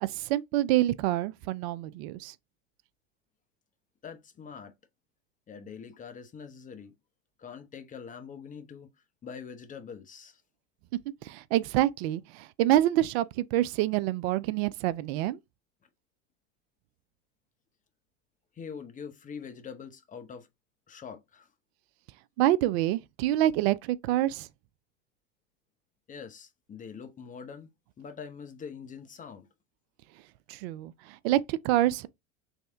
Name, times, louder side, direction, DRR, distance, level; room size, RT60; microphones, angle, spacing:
voice 1, 0.0-2.3 11.2-15.4 22.4-24.5 30.5-32.1, right 14 dB, 55° right, 0.5 m, -27 dB
voice 2, 4.0-4.7 5.5-6.9 7.4-8.9 9.2-10.4 18.5-20.5 20.9-21.5 26.1-27.7 28.0-29.5, left 6 dB, 20° left, 0.7 m, -44 dB
3.2 x 2.7 x 3.4 m
hypercardioid pair, 85°, 38 cm